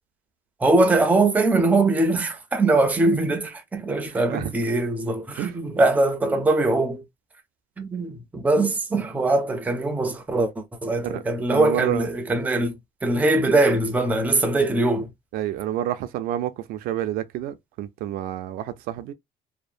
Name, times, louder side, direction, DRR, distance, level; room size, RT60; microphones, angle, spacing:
voice 1, 0.6-7.0 7.8-15.1, right 2 dB, 10° right, 0.4 m, -22 dB
voice 2, 4.1-4.5 5.4-5.5 11.0-11.2 11.5-12.1 15.3-19.1, right 12 dB, 70° right, 0.4 m, -29 dB
2.8 x 2.0 x 2.4 m
cardioid pair, 155°, 16 cm